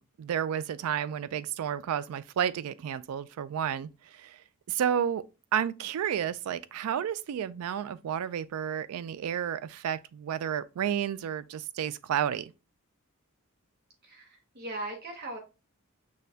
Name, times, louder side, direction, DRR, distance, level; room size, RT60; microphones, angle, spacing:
voice 1, 0.0-4.4 4.7-5.2 5.5-12.5, right 9 dB, 75° right, 0.3 m, -31 dB
voice 2, 14.0-15.4, right 2 dB, 45° right, 0.7 m, -39 dB
6.2 x 2.2 x 2.6 m
head